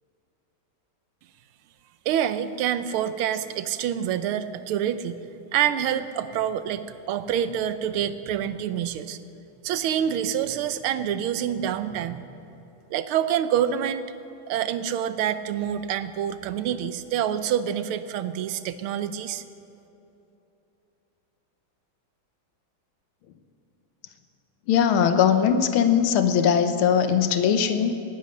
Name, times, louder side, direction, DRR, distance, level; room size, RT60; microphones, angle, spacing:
voice 1, 2.0-5.2 5.5-9.2 9.6-12.3 12.9-14.1 14.5-19.4, right 9 dB, 85° right, 12 dB, 1.6 m, -27 dB
voice 2, 24.7-27.9, left 8 dB, 80° left, 9 dB, 1.8 m, -20 dB
18.0 x 10.5 x 6.5 m, 2.9 s
omnidirectional pair, 2.3 m